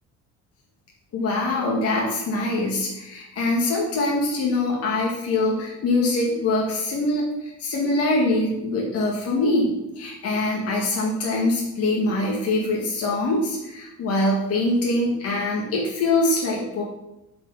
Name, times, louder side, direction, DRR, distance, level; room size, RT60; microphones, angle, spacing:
voice 1, 1.1-16.8, left 2 dB, 50° left, -3 dB, 1.9 m, -23 dB
8.3 x 5.3 x 5.6 m, 0.91 s
cardioid pair, 155°, 31 cm